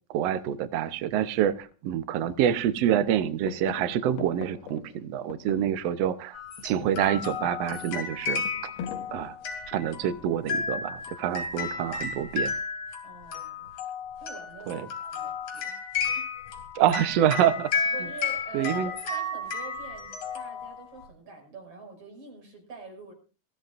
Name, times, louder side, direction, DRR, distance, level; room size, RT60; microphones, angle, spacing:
voice 1, 0.1-6.4 6.6-8.7 9.1-9.3 9.7-12.5 14.7-14.9 16.7-17.7 18.5-18.9, right 10 dB, 85° right, 1.4 m, -26 dB
sound 1, 1.6-1.7 2.2-2.8 3.0-6.2 6.5-10.1 11.1-11.5, left 8 dB, 85° left, 3.0 m, -43 dB
sound 2, 6.3-21.1, left 5 dB, 55° left, 4.1 m, -33 dB
voice 2, 13.0-13.7 14.2-15.8 16.2-16.3 17.9-23.1, right 5 dB, 40° right, 7.0 m, -45 dB
21.5 x 16.0 x 2.6 m
omnidirectional pair, 4.2 m